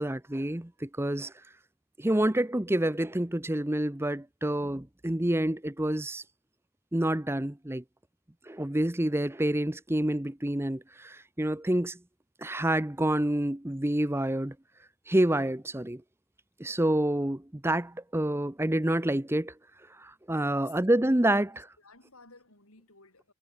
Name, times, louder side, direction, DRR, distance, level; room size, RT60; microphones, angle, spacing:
voice 1, 0.0-1.3 2.0-6.2 6.9-7.8 8.5-12.0 12.4-14.5 15.1-16.0 16.6-19.5 20.0-21.7, right 1 dB, 10° right, 0.7 m, -28 dB
voice 2, 21.5-23.3, left 4 dB, 75° left, 7.0 m, -56 dB
head